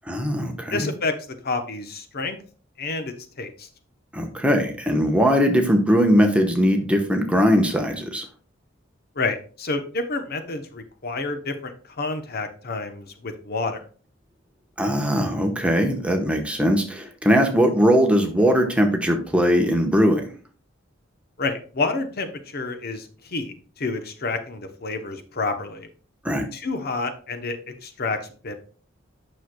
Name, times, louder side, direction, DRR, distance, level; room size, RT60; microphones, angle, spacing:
voice 1, 0.1-0.9 4.1-8.2 14.8-20.2 26.2-26.5, equal, 5° right, 3 dB, 1.0 m, -20 dB
voice 2, 0.7-1.1 1.4-2.4 2.8-3.7 9.2-13.8 21.4-25.9 26.5-28.5, left 3 dB, 50° left, 7 dB, 0.8 m, -29 dB
8.9 x 6.3 x 2.2 m, 0.39 s
head